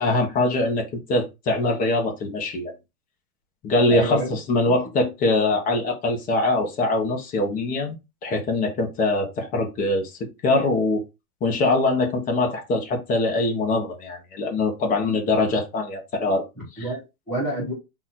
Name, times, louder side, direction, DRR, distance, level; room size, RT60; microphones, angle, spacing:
voice 1, 0.0-2.7 3.6-8.0 8.2-11.0 11.4-16.4 16.7-16.8, left 2 dB, 20° left, 0.9 m, -23 dB
voice 2, 3.9-4.4 16.6-17.7, right 1 dB, ahead, 0.3 m, -28 dB
4.1 x 2.5 x 4.1 m
hypercardioid pair, 150°, 45 cm